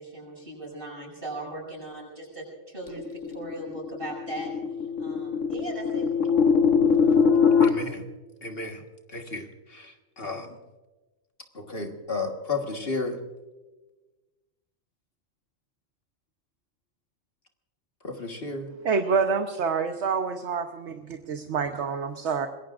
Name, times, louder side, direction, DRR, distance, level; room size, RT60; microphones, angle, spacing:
voice 1, 0.0-3.0 3.3-4.5 5.0-6.1, right 1 dB, 45° right, -3 dB, 7.3 m, -38 dB
sound 1, 3.0-7.7, left 6 dB, 70° left, 1.7 m, -22 dB
voice 2, 7.6-8.0 8.4-8.8 9.1-10.6 11.5-13.2 18.0-18.7, left 3 dB, 50° left, 3 dB, 1.7 m, -33 dB
voice 3, 18.8-22.5, right 5 dB, 60° right, 6 dB, 1.2 m, -27 dB
26.0 x 21.0 x 2.5 m, 1.2 s
omnidirectional pair, 1.3 m